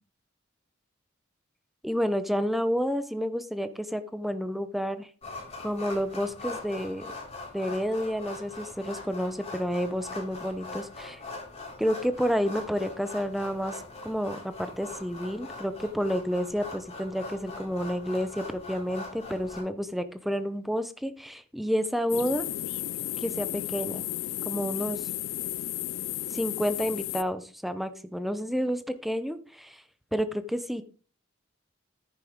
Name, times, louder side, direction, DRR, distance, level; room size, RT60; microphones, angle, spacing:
voice 1, 1.8-5.1 5.6-7.1 7.5-11.2 11.8-22.5 23.2-24.0 24.4-25.1 26.3-29.8 30.1-30.8, equal, ahead, 11 dB, 0.7 m, -30 dB
sound 1, 5.2-19.6, left 2 dB, 30° left, 3.4 m, -42 dB
sound 2, 22.1-27.2, left 13 dB, 80° left, 0.4 m, -33 dB
10.5 x 9.7 x 3.7 m, 0.38 s
head